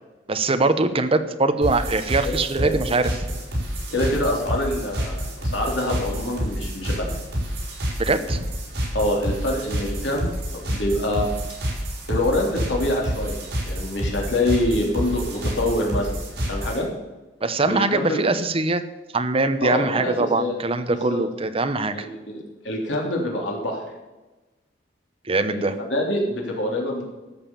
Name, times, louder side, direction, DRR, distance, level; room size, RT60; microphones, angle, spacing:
voice 1, 0.3-3.2 8.0-8.4 17.4-18.8 19.1-22.1 25.3-25.7, right 3 dB, 30° right, 9 dB, 0.9 m, -22 dB
sound 1, 1.6-16.9, equal, 60° right, 5.4 m, -28 dB
voice 2, 2.2-2.7 3.9-7.1 8.9-11.3 12.1-13.4 13.7-16.1 16.5-16.9 17.6-18.2 19.6-20.6 20.9-21.2 21.9-23.8 25.5-27.0, left 1 dB, 90° left, -1 dB, 3.3 m, -25 dB
13.0 x 7.3 x 7.0 m, 1.1 s
head